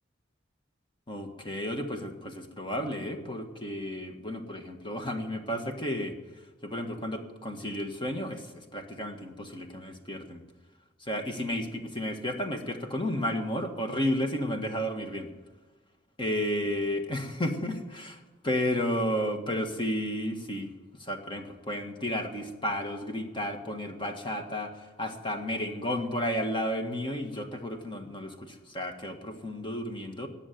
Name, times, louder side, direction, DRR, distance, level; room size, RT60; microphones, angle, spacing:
voice 1, 1.1-6.1 6.6-10.4 11.0-15.3 16.2-30.3, left 1 dB, 25° left, 5 dB, 1.6 m, -32 dB
18.5 x 7.4 x 9.2 m, 1.3 s
head